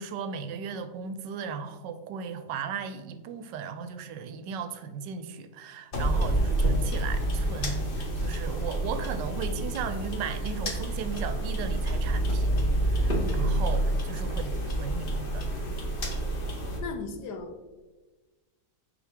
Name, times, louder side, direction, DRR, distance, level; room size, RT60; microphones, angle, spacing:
voice 1, 0.0-12.6 12.8-14.5 14.8-15.1 15.3-15.5, right 6 dB, 85° right, 11 dB, 1.2 m, -36 dB
sound 1, 5.9-16.8, right 1 dB, 40° left, 1.0 m, -28 dB
voice 2, 6.2-6.5 14.3-14.4 16.8-17.7, left 4 dB, 70° left, 5 dB, 1.3 m, -39 dB
7.1 x 4.7 x 3.6 m, 1.2 s
omnidirectional pair, 1.9 m